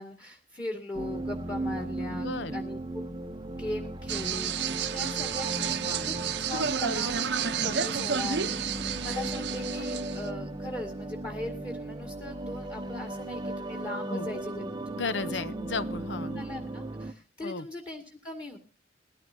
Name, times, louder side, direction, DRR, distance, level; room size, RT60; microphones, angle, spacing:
voice 1, 0.0-3.0 3.6-6.2 6.5-15.5 16.4-18.6, left 2 dB, 25° left, 1 dB, 2.1 m, -39 dB
sound 1, 0.9-17.1, right 2 dB, 25° right, 0.7 m, -36 dB
voice 2, 2.1-2.6 5.7-6.1 14.1-14.3 14.9-16.4 17.4-17.7, left 4 dB, 75° left, 14 dB, 0.8 m, -35 dB
sound 2, 4.1-10.3, right 7 dB, 65° right, 0.8 m, -31 dB
21.5 x 14.0 x 2.7 m, 0.32 s
head